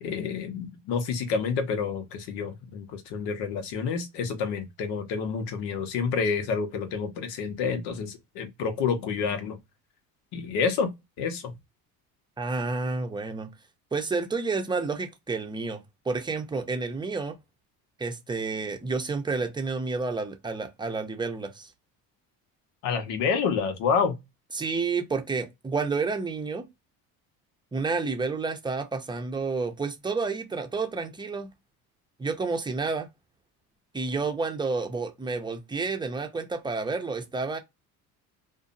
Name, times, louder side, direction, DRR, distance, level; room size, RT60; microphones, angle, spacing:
voice 1, 0.0-9.6 10.3-10.9 11.2-11.5 22.8-24.2, left 5 dB, 75° left, 0.9 m, -28 dB
voice 2, 12.4-13.5 13.9-17.4 18.0-21.7 24.5-26.7 27.7-31.5 32.2-33.1 33.9-37.6, right 4 dB, 10° right, 0.6 m, -30 dB
2.6 x 2.2 x 2.5 m
supercardioid pair, 75°, 42 cm